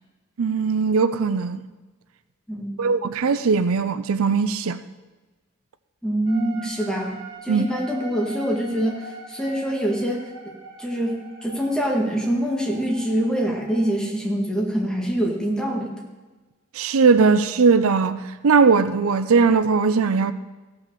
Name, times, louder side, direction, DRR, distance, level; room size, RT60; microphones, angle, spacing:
voice 1, 0.4-1.7 2.8-4.8 7.5-7.7 16.7-20.3, right 5 dB, 80° right, 0.5 m, -19 dB
voice 2, 2.5-2.8 6.0-16.0, equal, 5° left, 1.7 m, -25 dB
sound 1, 6.3-14.0, right 4 dB, 65° right, 2.7 m, -42 dB
15.5 x 5.8 x 6.7 m
head